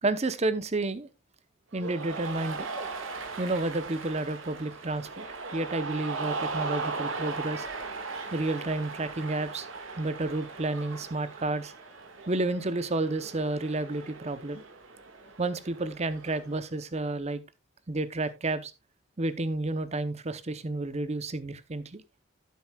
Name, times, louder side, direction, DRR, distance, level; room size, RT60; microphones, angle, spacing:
voice 1, 0.0-1.1 1.7-2.7 3.4-5.2 5.5-7.7 8.3-9.7 10.0-11.7 12.3-14.6 15.4-17.4 17.9-18.7 19.2-22.0, right 2 dB, 30° right, 0.7 m, -31 dB
Cheering, 1.7-16.6, right 4 dB, 75° right, 1.8 m, -38 dB
12.0 x 9.3 x 2.3 m
head